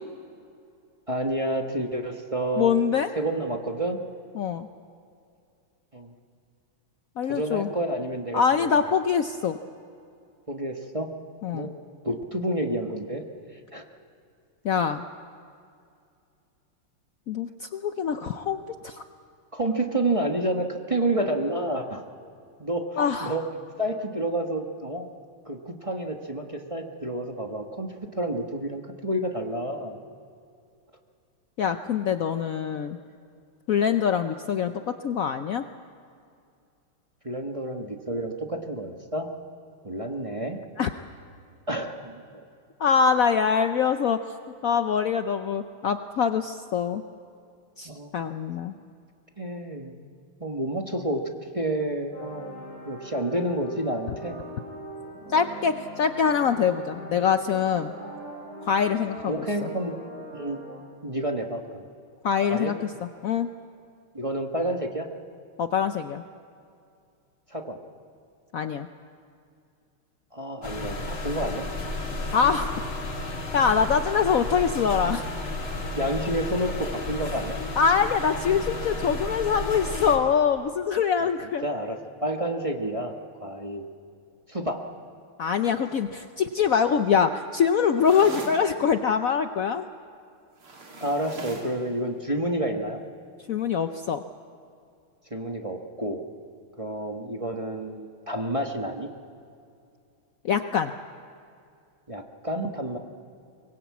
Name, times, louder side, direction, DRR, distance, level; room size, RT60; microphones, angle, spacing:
voice 1, 1.1-2.7 3.1-4.0 5.9-6.1 7.2-8.8 10.5-11.1 11.5-11.7 12.0-13.2 13.7-13.9 19.5-22.0 22.6-23.4 23.8-25.1 25.5-30.0 37.2-39.3 39.8-40.6 41.7-42.5 47.8-48.1 49.4-49.9 50.4-51.2 51.5-52.6 52.8-54.4 59.3-59.9 60.3-60.7 61.0-61.9 62.5-62.8 64.1-65.1 67.5-67.8 70.3-71.7 73.7-73.8 75.9-77.6 81.4-83.1 83.4-83.9 84.5-84.8 91.0-93.0 95.3-96.2 96.8-99.1 102.1-103.0, right 1 dB, 20° right, 2 dB, 1.0 m, -29 dB
voice 2, 2.6-3.1 4.4-4.7 7.2-7.7 8.3-9.6 11.4-11.7 14.6-15.0 17.3-19.0 23.0-23.4 31.6-33.0 33.7-35.6 40.8-40.9 42.8-44.2 44.6-47.0 47.8-48.7 55.3-57.9 58.7-59.7 62.2-62.7 63.2-63.5 65.6-66.2 68.5-68.9 72.3-72.8 73.5-75.2 77.8-81.6 85.4-89.8 93.5-94.2 100.4-100.9, left 7 dB, 90° left, 8 dB, 0.7 m, -24 dB
sound 1, 52.1-60.8, right 1 dB, 45° right, 5.8 m, -41 dB
sound 2, 70.6-80.2, left 2 dB, 70° left, 3.4 m, -33 dB
sound 3, 88.0-88.6 90.6-91.8, right 3 dB, 75° right, 3.9 m, -39 dB
23.5 x 20.5 x 8.4 m, 2.4 s
omnidirectional pair, 2.3 m